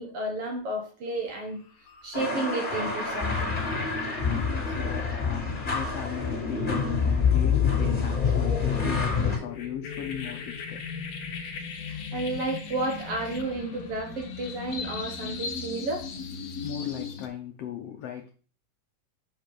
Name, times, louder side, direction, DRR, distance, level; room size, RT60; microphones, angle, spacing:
voice 1, 0.0-1.6 2.0-3.6 11.9-16.1, right 2 dB, 60° right, 1.7 m, -32 dB
sound 1, 1.2-1.4 1.8-17.3, left 5 dB, 65° left, 1.8 m, -39 dB
sound 2, 2.1-9.4, left 5 dB, 20° left, 1.7 m, -26 dB
voice 2, 4.2-10.8 16.6-18.3, left 9 dB, 85° left, 1.4 m, -37 dB
5.7 x 5.1 x 6.0 m
omnidirectional pair, 3.9 m